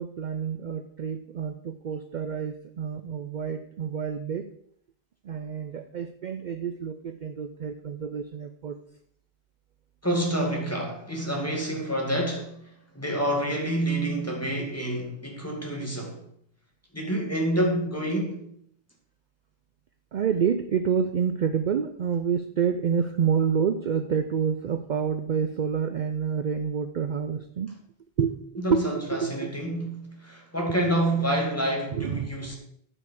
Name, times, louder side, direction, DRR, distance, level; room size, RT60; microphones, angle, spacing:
voice 1, 0.0-4.5 5.2-8.8 20.1-27.7 28.2-28.8 29.1-29.5 31.9-32.5, right 7 dB, 55° right, 0.6 m, -28 dB
voice 2, 10.0-12.6 12.9-16.2 16.9-18.4 28.6-32.6, right 1 dB, 15° left, 2.2 m, -28 dB
9.5 x 5.5 x 6.8 m
omnidirectional pair, 1.0 m